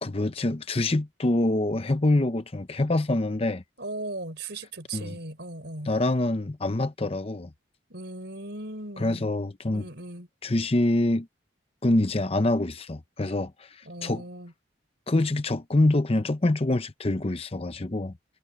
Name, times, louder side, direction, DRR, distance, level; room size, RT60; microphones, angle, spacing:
voice 1, 0.0-3.6 4.9-5.2 5.9-7.5 9.0-9.9 10.4-11.3 11.8-14.2 15.1-18.1, left 2 dB, 30° left, 0.7 m, -25 dB
voice 2, 3.8-5.9 7.9-9.2 9.7-10.3 13.8-14.5, right 2 dB, 65° right, 5.5 m, -38 dB
head